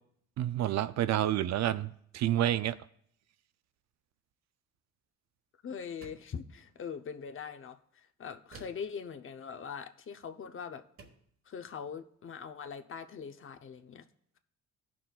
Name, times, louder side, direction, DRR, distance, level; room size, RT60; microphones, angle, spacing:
voice 1, 0.4-2.8, right 12 dB, 60° right, 0.5 m, -29 dB
voice 2, 5.6-10.8 11.5-14.0, left 6 dB, 45° left, 0.7 m, -42 dB
sound 1, 6.0-6.4 8.5-9.0 10.3-10.4 11.0-11.3, right 4 dB, 45° right, 1.4 m, -53 dB
17.0 x 6.0 x 2.3 m
cardioid pair, 90°, 30 cm